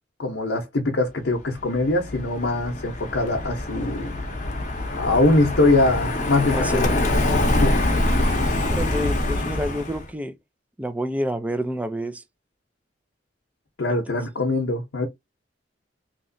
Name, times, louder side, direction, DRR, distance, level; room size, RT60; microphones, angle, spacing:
voice 1, 0.2-4.2 4.9-6.9 7.6-7.8 13.8-15.1, left 2 dB, 75° left, 0.7 m, -22 dB
Car passing by, 1.5-10.1, left 1 dB, 45° left, 0.8 m, -24 dB
voice 2, 6.5-7.0 8.7-10.4 10.8-12.2 13.9-14.0, equal, 10° right, 0.4 m, -28 dB
3.1 x 2.8 x 2.6 m
head